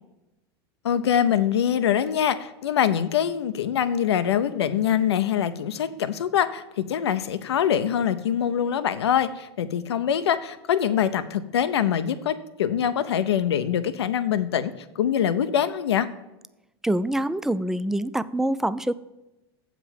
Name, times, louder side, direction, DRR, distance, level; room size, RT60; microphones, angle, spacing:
voice 1, 0.8-16.1, left 9 dB, 90° left, 12 dB, 0.7 m, -24 dB
voice 2, 16.8-18.9, right 1 dB, 5° right, 15 dB, 0.3 m, -25 dB
7.7 x 5.1 x 7.3 m, 0.98 s
hypercardioid pair, 110°, 13 cm